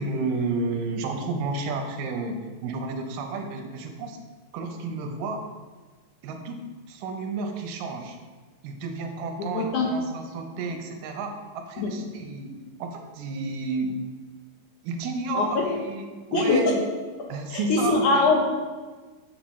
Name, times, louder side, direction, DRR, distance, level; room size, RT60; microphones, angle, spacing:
voice 1, 0.0-4.2 4.5-5.5 6.2-8.2 8.6-14.0 14.8-16.9 17.3-18.3, right 3 dB, 80° right, 4 dB, 2.4 m, -31 dB
voice 2, 9.4-9.9 10.7-10.8 11.8-11.9 15.4-15.7 16.3-16.6 17.5-18.4, left 4 dB, 70° left, 0 dB, 2.2 m, -23 dB
7.5 x 7.0 x 3.1 m, 1.4 s
omnidirectional pair, 3.9 m